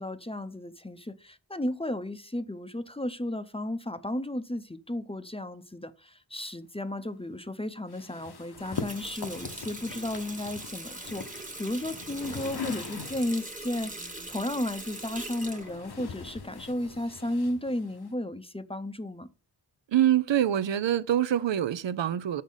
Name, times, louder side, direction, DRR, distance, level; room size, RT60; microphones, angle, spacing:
voice 1, 0.0-19.3, left 1 dB, 15° left, 0.5 m, -34 dB
sound 1, 7.9-13.5 14.6-18.1, left 5 dB, 60° left, 0.9 m, -42 dB
Water tap faucet, 8.5-17.0, right 1 dB, 20° right, 1.1 m, -42 dB
voice 2, 19.9-22.4, right 11 dB, 90° right, 0.5 m, -25 dB
6.5 x 5.1 x 5.4 m
wide cardioid pair, 65°, 43 cm